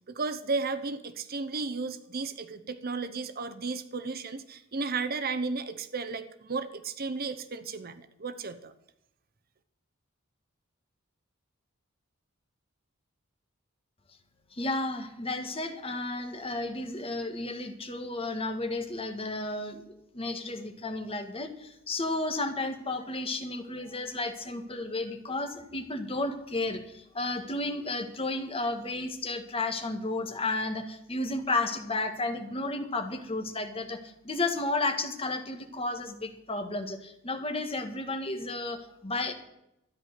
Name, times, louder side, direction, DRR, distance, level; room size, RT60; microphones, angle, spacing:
voice 1, 0.1-8.7, right 4 dB, 45° right, 10 dB, 0.8 m, -34 dB
voice 2, 14.5-19.8 20.1-39.3, left 2 dB, 25° left, 7 dB, 1.6 m, -32 dB
13.0 x 10.5 x 6.6 m, 0.82 s
head